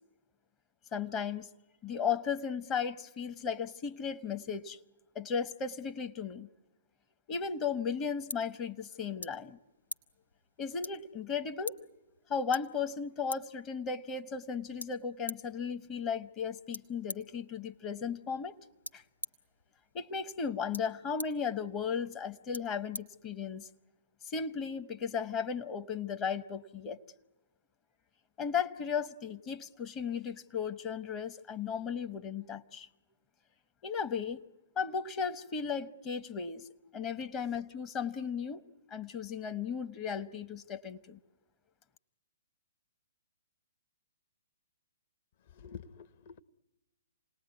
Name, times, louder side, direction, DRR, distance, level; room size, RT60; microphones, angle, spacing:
voice 1, 0.9-1.5 1.8-4.8 5.1-6.5 7.3-9.6 10.6-11.8 12.3-18.6 18.9-19.0 19.9-23.7 24.3-27.0 28.4-32.9 33.8-34.4 34.8-36.6 36.9-38.6 38.9-41.2, left 6 dB, 25° left, 0.9 m, -35 dB
sound 1, 7.5-23.8, left 2 dB, 85° left, 1.2 m, -48 dB
voice 2, 45.4-46.4, left 6 dB, 45° left, 1.0 m, -49 dB
28.0 x 19.0 x 9.5 m
figure-of-eight pair, 125°, 0 cm